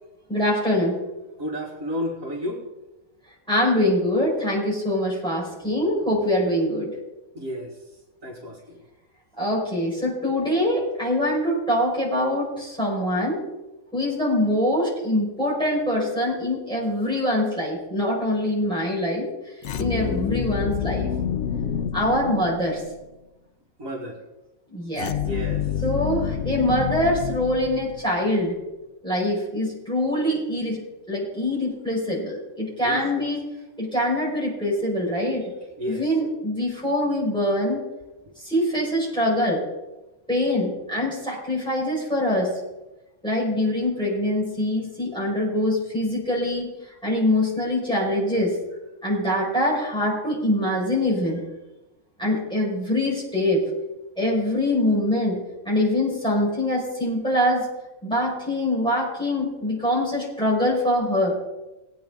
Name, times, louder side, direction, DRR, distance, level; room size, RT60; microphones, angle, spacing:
voice 1, 0.3-1.0 3.5-6.9 9.4-13.4 13.9-19.3 19.8-21.1 21.9-22.8 24.7-25.1 25.8-28.5 29.0-33.4 33.8-35.5 35.9-37.8 38.4-39.6 40.3-42.5 43.2-46.7 47.0-48.5 49.0-51.4 52.2-53.6 54.2-57.7 58.0-61.4, left 1 dB, 5° left, -5 dB, 4.7 m, -24 dB
voice 2, 1.4-2.6 7.3-7.7 8.2-8.8 19.7-20.1 23.8-24.2 25.2-25.7 32.8-33.3 35.8-36.0, left 1 dB, 65° right, -2 dB, 2.3 m, -32 dB
sound 1, 19.6-23.0 25.0-28.2, left 9 dB, 60° left, 0.8 m, -28 dB
19.0 x 8.8 x 3.7 m, 1.0 s
omnidirectional pair, 1.5 m